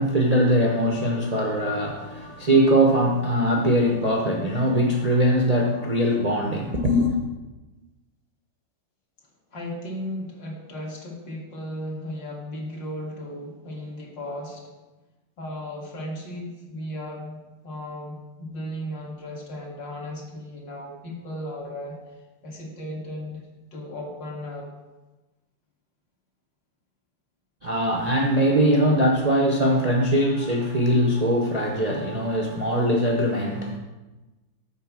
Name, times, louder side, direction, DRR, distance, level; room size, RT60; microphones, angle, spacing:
voice 1, 0.0-7.2 27.6-33.8, equal, 55° right, 0 dB, 0.4 m, -21 dB
voice 2, 9.5-14.7 15.4-22.0 22.4-23.5 23.7-24.7, left 1 dB, 70° left, -2 dB, 2.7 m, -35 dB
6.6 x 6.1 x 7.3 m, 1.1 s
omnidirectional pair, 2.0 m